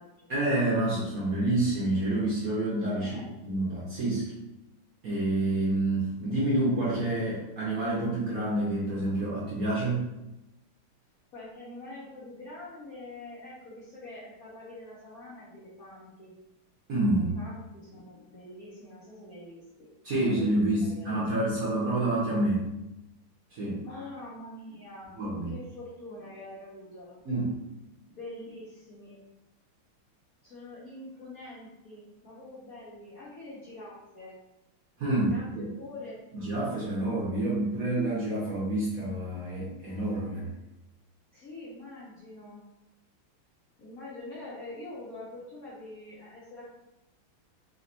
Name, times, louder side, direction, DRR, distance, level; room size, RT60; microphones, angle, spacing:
voice 1, 0.3-3.1 3.4-4.3 5.0-10.1 16.9-17.3 20.0-22.7 23.5-23.8 25.1-25.5 27.2-27.5 35.0-35.7 36.3-40.4, right 1 dB, 55° right, -7 dB, 1.1 m, -28 dB
voice 2, 2.9-3.3 11.3-16.3 17.1-21.8 23.8-25.1 25.5-27.2 28.1-29.2 30.4-34.3 35.2-36.2 40.2-40.5 41.3-42.6 43.8-46.7, left 2 dB, 55° left, -7 dB, 1.1 m, -45 dB
4.2 x 3.1 x 2.8 m, 0.95 s
omnidirectional pair, 2.4 m